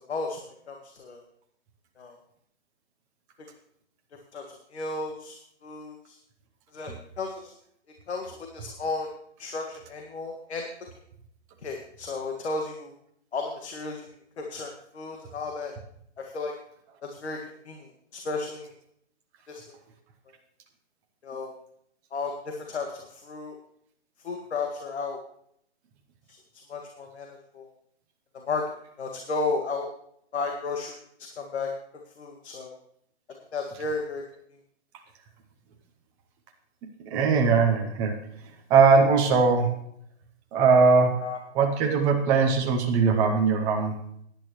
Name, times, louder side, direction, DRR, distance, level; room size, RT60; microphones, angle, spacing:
voice 1, 0.1-0.4 0.7-1.2 2.0-2.2 4.3-6.2 6.7-7.5 8.1-9.1 9.4-10.6 11.6-12.9 13.3-14.1 14.4-15.7 16.2-16.5 17.0-17.4 17.7-18.7 19.5-19.6 21.2-21.5 22.1-23.5 24.2-25.2 26.7-27.7 28.3-28.6 29.0-29.9 30.3-31.0 31.4-31.7 32.2-32.8 33.5-34.2 41.2-41.4, left 3 dB, 65° left, 2 dB, 1.9 m, -33 dB
voice 2, 37.1-38.1 38.7-39.7 40.5-41.1 41.5-44.0, right 5 dB, 10° right, 3 dB, 0.6 m, -20 dB
17.5 x 10.5 x 3.1 m, 0.71 s
hypercardioid pair, 155°, 36 cm